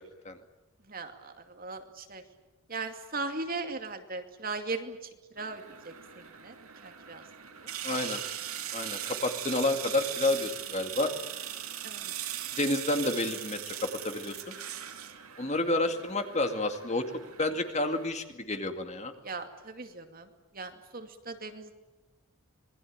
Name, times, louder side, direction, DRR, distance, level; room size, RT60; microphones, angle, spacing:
voice 1, 0.9-2.2 2.7-5.0 5.3-6.6 6.8-7.2 7.6-7.7 11.8-12.2 15.4-15.5 19.2-20.3 20.5-21.7, right 3 dB, 40° right, 6 dB, 2.5 m, -38 dB
sound 1, 5.4-18.1, right 11 dB, 80° right, 2.8 m, -40 dB
voice 2, 7.8-8.2 8.7-11.1 12.5-13.7 14.0-14.6 15.4-17.1 17.4-19.1, left 2 dB, 30° left, 6 dB, 2.3 m, -30 dB
26.5 x 21.5 x 8.9 m, 1.1 s
head